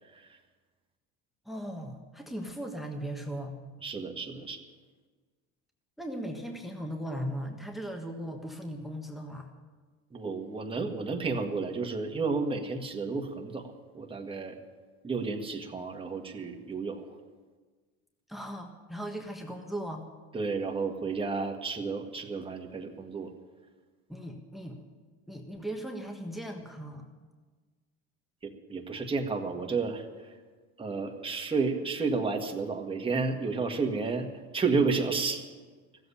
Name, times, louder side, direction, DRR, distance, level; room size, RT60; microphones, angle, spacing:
voice 1, 1.4-3.5 6.0-9.5 18.3-20.0 24.1-24.8 25.3-27.1, equal, ahead, 3 dB, 1.5 m, -38 dB
voice 2, 3.8-4.6 10.1-14.5 15.0-17.1 20.3-23.3 28.4-30.0 30.8-34.3 34.5-35.4, right 4 dB, 15° right, 2 dB, 1.8 m, -31 dB
15.5 x 8.0 x 9.9 m, 1.4 s
supercardioid pair, 105°, 34 cm